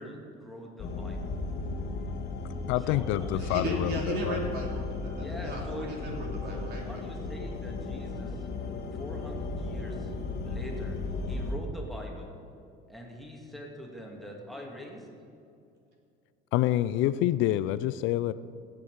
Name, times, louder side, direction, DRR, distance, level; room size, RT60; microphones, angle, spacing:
voice 1, 0.0-1.4 2.8-4.0 5.1-6.2 6.5-10.1 10.4-11.0 11.3-12.3 12.9-15.1, equal, ahead, 0 dB, 1.9 m, -43 dB
sound 1, 0.8-11.6, left 3 dB, 50° left, 1.6 m, -35 dB
voice 2, 2.7-4.4 16.5-18.3, left 14 dB, 70° left, 15 dB, 0.4 m, -27 dB
voice 3, 3.4-7.0, right 2 dB, 50° right, -1 dB, 3.2 m, -35 dB
16.5 x 8.7 x 4.7 m, 2.5 s
cardioid pair, 135°, 21 cm